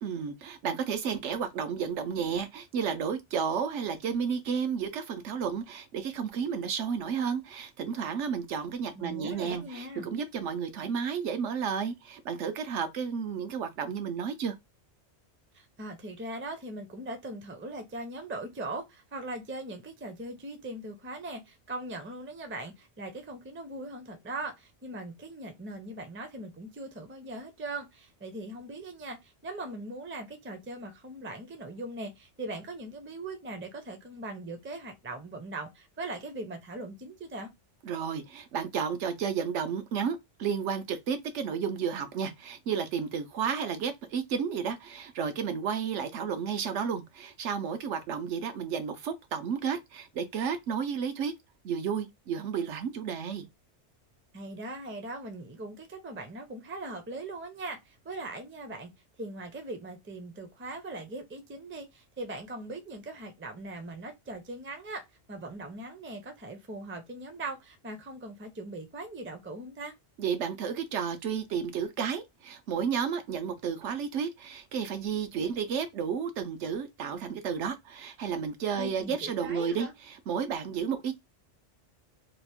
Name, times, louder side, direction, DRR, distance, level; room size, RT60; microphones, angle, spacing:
voice 1, 0.0-14.5 37.8-51.3 51.6-53.5 70.2-81.2, right 7 dB, 75° right, 1.0 m, -32 dB
voice 2, 8.9-10.1 15.5-37.5 54.3-58.9 59.2-65.0 65.3-69.9 78.8-79.9, right 2 dB, 15° right, 0.4 m, -40 dB
2.9 x 2.4 x 3.5 m
omnidirectional pair, 1.2 m